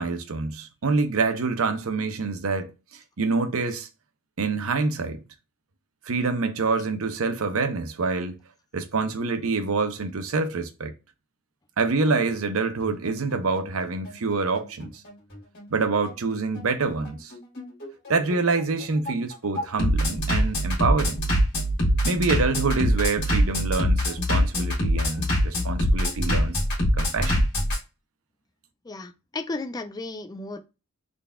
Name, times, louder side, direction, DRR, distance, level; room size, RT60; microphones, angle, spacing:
voice 1, 0.0-2.7 3.2-3.9 4.4-5.2 6.1-8.4 8.7-10.9 11.8-15.0 15.7-17.3 18.1-21.2 22.0-26.6 27.0-27.5, right 4 dB, 75° right, 0.7 m, -26 dB
Bass drum, 11.8-27.8, equal, 55° left, 2.0 m, -24 dB
voice 2, 28.8-30.7, left 2 dB, 20° left, 0.4 m, -34 dB
3.8 x 3.4 x 2.3 m
head